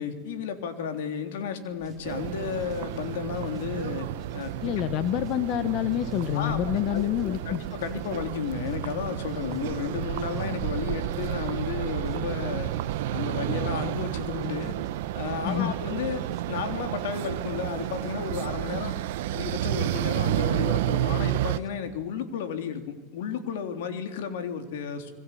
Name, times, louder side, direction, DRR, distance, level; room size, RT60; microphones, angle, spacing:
voice 1, 0.0-4.7 6.3-12.7 13.1-14.7 15.1-18.9 19.3-25.1, left 7 dB, 80° left, 7 dB, 3.5 m, -33 dB
sound 1, 1.8-21.7, right 2 dB, 15° right, 5.1 m, -52 dB
sound 2, 2.0-21.6, right 14 dB, 75° right, 0.9 m, -31 dB
voice 2, 4.6-7.6 15.4-15.7, left 13 dB, 45° left, 13 dB, 1.0 m, -27 dB
27.5 x 21.5 x 8.5 m, 1.2 s
supercardioid pair, 145°, 0 cm